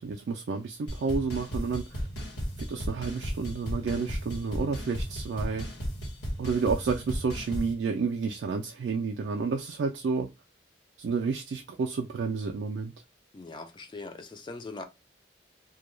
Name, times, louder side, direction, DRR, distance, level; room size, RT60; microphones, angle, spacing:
voice 1, 0.0-2.1 2.6-5.7 6.4-10.3 11.0-12.9, right 5 dB, 70° right, 0.3 m, -30 dB
sound 1, 0.9-7.7, equal, 70° left, 1.0 m, -35 dB
voice 2, 13.3-14.8, left 3 dB, 25° left, 0.3 m, -41 dB
2.2 x 2.2 x 3.0 m
head